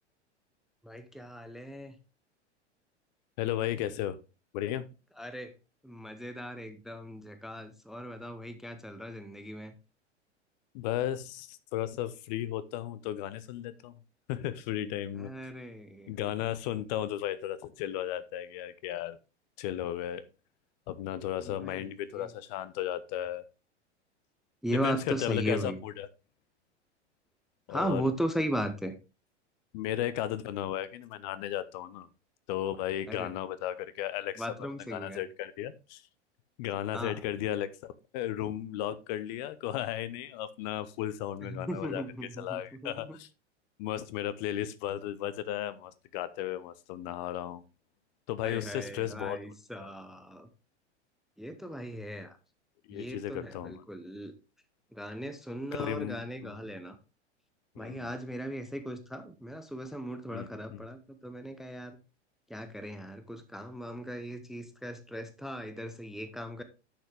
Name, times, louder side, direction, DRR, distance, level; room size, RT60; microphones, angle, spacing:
voice 1, 0.8-2.0 5.2-5.5 5.8-9.7 15.2-16.3 21.4-22.3 24.6-25.8 27.7-28.9 33.1-33.3 34.4-35.2 36.9-37.2 41.4-43.2 48.4-50.5 51.4-52.4 52.9-54.3 54.9-57.0 57.8-62.0 62.5-66.6, equal, ahead, 0.6 m, -37 dB
voice 2, 3.4-4.2 4.5-4.9 10.7-13.9 14.3-15.5 16.1-19.2 19.6-20.2 20.9-23.4 24.7-26.1 27.7-28.0 29.7-32.1 32.5-34.4 34.9-36.0 36.6-42.0 42.4-43.3 43.8-47.6 48.3-49.4 49.8-49.9 52.9-53.8 55.7-56.6 57.8-58.1 60.3-60.8, left 12 dB, 40° left, 0.7 m, -35 dB
10.0 x 6.3 x 3.3 m
figure-of-eight pair, 95°, 35 cm